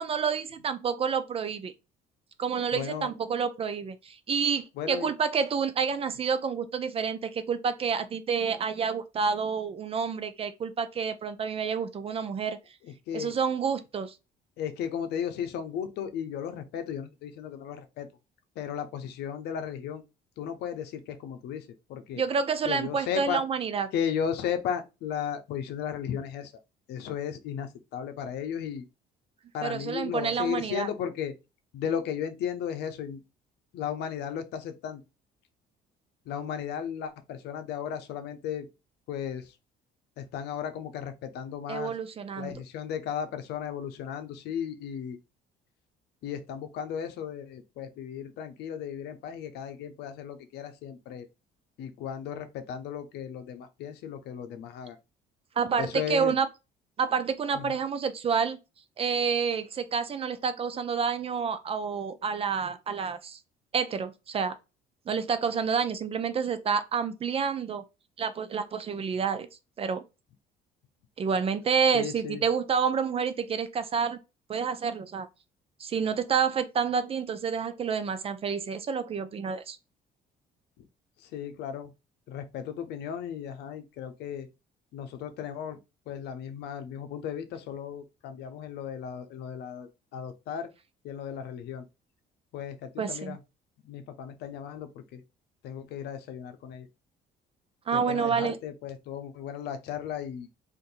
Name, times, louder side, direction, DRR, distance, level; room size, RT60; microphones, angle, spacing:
voice 1, 0.0-1.7 2.4-12.6 13.1-14.1 22.2-23.9 29.6-30.9 41.7-42.5 55.6-56.5 57.0-58.6 59.0-63.4 63.7-64.6 65.1-67.8 68.2-69.5 69.8-70.0 71.2-74.2 74.5-75.3 75.8-79.8 93.0-93.4 97.9-98.6, right 6 dB, 35° right, 0.5 m, -29 dB
voice 2, 2.7-3.1 4.7-5.1 12.8-13.3 14.6-18.1 18.6-20.0 20.4-22.2 22.6-23.4 23.9-26.5 26.9-28.8 29.5-31.3 31.7-33.2 33.7-35.0 36.2-38.7 39.1-39.5 40.2-41.9 42.4-45.2 46.2-51.3 51.8-55.0 55.8-56.3 57.5-57.8 71.9-72.4 80.8-80.9 81.2-81.9 82.3-84.5 84.9-85.8 86.1-90.7 91.0-91.8 92.5-93.4 93.8-95.2 95.6-96.9 97.9-100.5, left 8 dB, 80° left, 0.7 m, -35 dB
2.6 x 2.6 x 3.9 m
cardioid pair, 110°, 17 cm